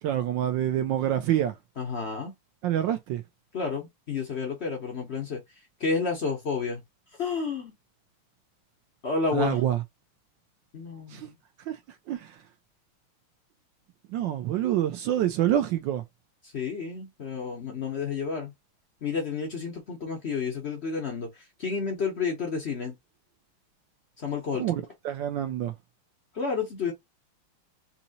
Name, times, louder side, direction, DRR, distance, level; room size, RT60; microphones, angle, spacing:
voice 1, 0.0-1.5 2.6-3.2 9.3-9.8 11.1-11.3 11.7-11.8 12.1-12.4 14.1-16.0 24.6-25.7, right 11 dB, 75° right, 1.1 m, -27 dB
voice 2, 1.8-2.3 3.5-5.4 5.8-6.8 7.2-7.7 9.0-9.6 10.7-11.3 16.5-18.5 19.0-22.9 24.2-24.6 26.3-26.9, left 5 dB, 65° left, 0.6 m, -30 dB
4.2 x 2.7 x 2.7 m
omnidirectional pair, 2.4 m